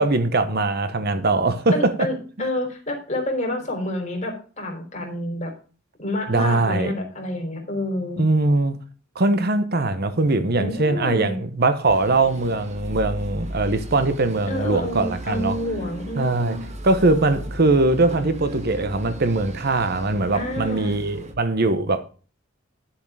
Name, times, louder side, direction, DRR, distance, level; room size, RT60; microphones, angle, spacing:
voice 1, 0.0-2.1 2.4-2.5 6.3-6.9 8.2-8.8 9.1-15.6 16.2-16.6 16.8-22.1, right 2 dB, 50° right, 1.0 m, -21 dB
voice 2, 1.7-5.5 6.0-8.2 10.6-11.3 14.5-16.6 20.3-21.0, left 1 dB, 35° left, 3.7 m, -28 dB
sound 1, 11.9-21.3, right 1 dB, 35° right, 1.4 m, -36 dB
11.0 x 7.2 x 4.9 m
head